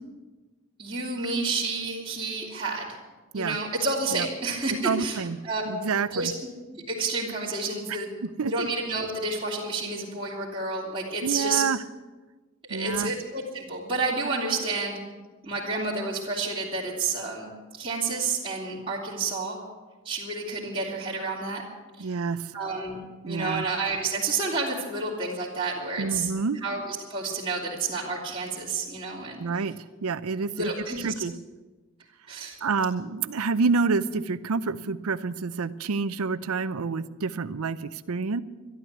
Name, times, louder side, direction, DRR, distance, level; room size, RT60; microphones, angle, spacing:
voice 1, 0.8-2.9 3.3-5.2 5.4-5.6 6.1-6.3 6.7-8.1 8.4-11.6 12.7-15.0 15.4-17.5 17.8-19.6 20.0-21.6 22.0-22.1 22.5-26.3 26.6-29.4 30.6-31.1 32.3-32.5, right 3 dB, 25° right, -8 dB, 2.7 m, -30 dB
voice 2, 4.8-5.4 5.7-6.3 7.9-8.0 8.4-8.7 11.2-11.8 12.7-13.1 22.0-22.5 23.3-23.6 26.0-26.6 29.4-29.8 30.0-30.7 31.0-31.3 32.6-38.4, right 4 dB, 85° right, 14 dB, 0.6 m, -28 dB
12.5 x 12.0 x 8.1 m, 1.3 s
head